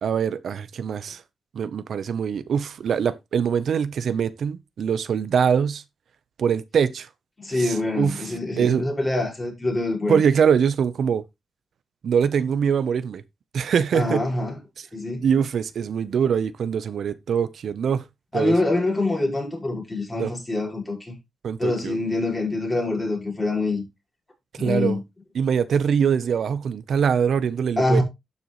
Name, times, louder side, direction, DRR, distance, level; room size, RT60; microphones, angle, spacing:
voice 1, 0.0-1.2 1.5-5.8 6.4-7.1 7.5-8.8 10.1-11.2 12.0-13.2 13.5-14.2 15.2-18.0 18.3-18.5 20.1-20.3 21.4-22.0 24.5-25.0 25.3-28.0, right 7 dB, 70° right, 0.8 m, -23 dB
voice 2, 7.4-10.2 13.9-14.5 14.9-15.3 18.3-21.2 21.6-23.8 24.6-25.0 27.8-28.0, left 2 dB, 20° left, 5.6 m, -25 dB
12.0 x 6.9 x 3.1 m
cardioid pair, 100°, 0 cm